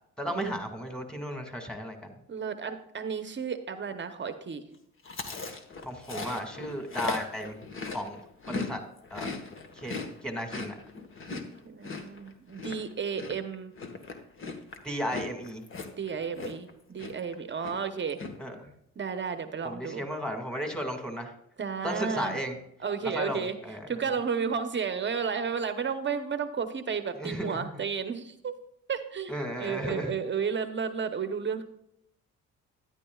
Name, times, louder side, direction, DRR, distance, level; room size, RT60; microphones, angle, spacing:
voice 1, 0.2-2.2 5.8-7.6 7.9-8.2 8.5-8.8 9.1-9.3 9.7-10.0 10.2-10.8 14.8-15.6 18.4-18.7 19.6-21.3 21.8-22.6 23.0-23.9 27.1-27.7 29.3-30.1, equal, 5° left, 4 dB, 2.0 m, -34 dB
voice 2, 2.3-4.6 11.6-13.7 16.0-18.2 19.0-20.1 21.6-22.4 22.8-23.6 23.9-28.5 28.9-31.6, right 6 dB, 40° right, 9 dB, 0.9 m, -32 dB
Chewing mastication, 5.1-8.7 9.0-16.7 17.0-17.3 17.6-18.3, left 4 dB, 40° left, 1.5 m, -38 dB
13.0 x 10.0 x 2.4 m, 0.76 s
cardioid pair, 90°, 30 cm